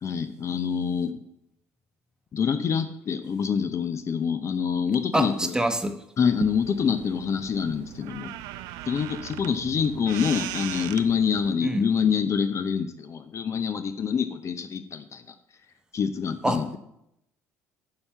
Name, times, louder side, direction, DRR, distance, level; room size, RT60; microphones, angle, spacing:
voice 1, 0.0-1.2 2.3-5.5 6.2-8.3 8.9-15.2 15.9-16.8, left 7 dB, 40° left, 11 dB, 0.7 m, -26 dB
voice 2, 5.1-6.0 11.6-11.9 16.4-16.6, right 1 dB, 10° right, 9 dB, 1.0 m, -25 dB
sound 1, 6.2-11.6, right 14 dB, 60° right, 0.5 m, -38 dB
9.7 x 5.8 x 5.6 m, 0.81 s
figure-of-eight pair, 55°, 8 cm